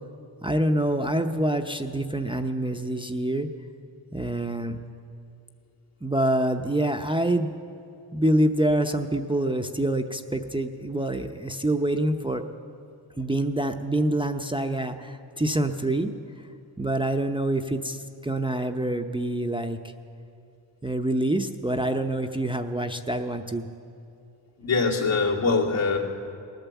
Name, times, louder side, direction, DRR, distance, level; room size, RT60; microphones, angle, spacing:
voice 1, 0.4-3.5 4.1-4.8 6.0-7.5 8.1-12.4 13.2-16.1 16.8-19.9 20.8-23.7, right 1 dB, 10° right, 5 dB, 0.6 m, -26 dB
voice 2, 24.6-26.0, left 4 dB, 75° left, -3 dB, 2.7 m, -23 dB
19.5 x 9.1 x 7.1 m, 2.7 s
cardioid pair, 75°, 47 cm